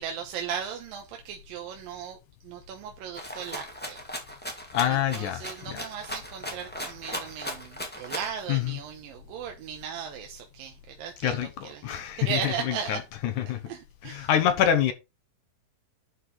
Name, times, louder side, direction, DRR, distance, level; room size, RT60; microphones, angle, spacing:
voice 1, 0.0-2.2 2.4-4.0 4.9-13.0 13.7-14.3, right 7 dB, 75° right, 2.5 m, -37 dB
Rattle (instrument), 3.1-8.4, equal, 5° left, 0.8 m, -37 dB
voice 2, 4.7-5.8 8.5-8.8 11.2-13.6 14.0-14.9, left 10 dB, 65° left, 2.1 m, -26 dB
11.5 x 4.9 x 4.0 m
omnidirectional pair, 4.5 m